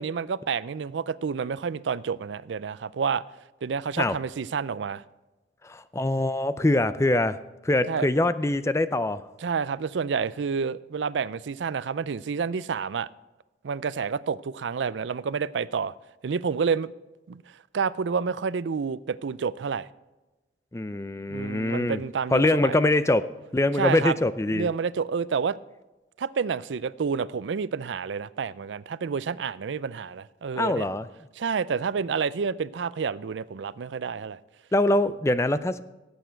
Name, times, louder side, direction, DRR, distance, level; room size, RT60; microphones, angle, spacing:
voice 1, 0.0-3.2 3.6-5.0 7.9-8.1 9.4-13.1 13.6-15.9 16.2-16.9 17.3-17.4 17.7-19.9 21.3-22.8 23.8-24.2 24.5-25.6 26.2-30.9 31.4-34.4, right 6 dB, 85° right, 0.4 m, -29 dB
voice 2, 5.6-9.2 20.7-22.0 22.3-24.7 30.6-31.1 34.7-35.8, left 2 dB, 15° left, 0.4 m, -24 dB
18.0 x 8.2 x 4.5 m
head